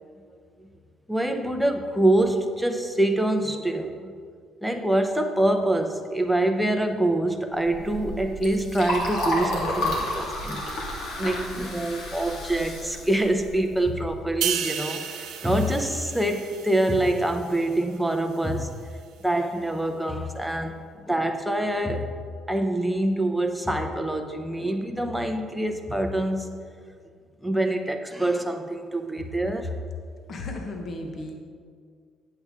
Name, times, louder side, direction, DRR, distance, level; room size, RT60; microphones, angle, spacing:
voice 1, 1.1-4.1 4.6-10.8 11.2-15.1 15.4-18.7 19.2-22.2 22.5-26.6 27.4-29.7, right 1 dB, ahead, 5 dB, 0.8 m, -25 dB
Liquid, 7.6-14.3, left 1 dB, 75° left, 2.1 m, -31 dB
sound 1, 14.4-17.9 18.3-18.5, right 9 dB, 80° right, 0.8 m, -33 dB
voice 2, 30.3-31.3, left 2 dB, 50° left, 3 dB, 1.2 m, -34 dB
8.8 x 7.9 x 3.7 m, 2.1 s
cardioid pair, 90°, 0 cm